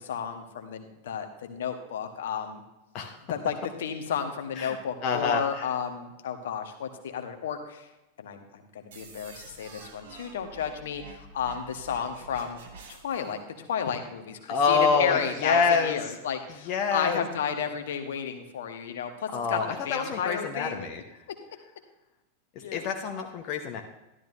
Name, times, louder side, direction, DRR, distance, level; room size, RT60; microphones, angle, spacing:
voice 1, 0.0-2.6 3.3-7.9 8.2-12.6 12.9-20.9 22.6-22.8, left 7 dB, 60° left, 6 dB, 1.2 m, -32 dB
voice 2, 5.0-5.6 14.5-16.0 16.7-17.2 19.3-21.0 22.7-23.8, left 5 dB, 40° left, 3 dB, 1.0 m, -26 dB
sound 1, 8.9-13.3, right 4 dB, 60° right, 1.7 m, -48 dB
12.5 x 12.0 x 2.6 m, 0.98 s
figure-of-eight pair, 90°, 0 cm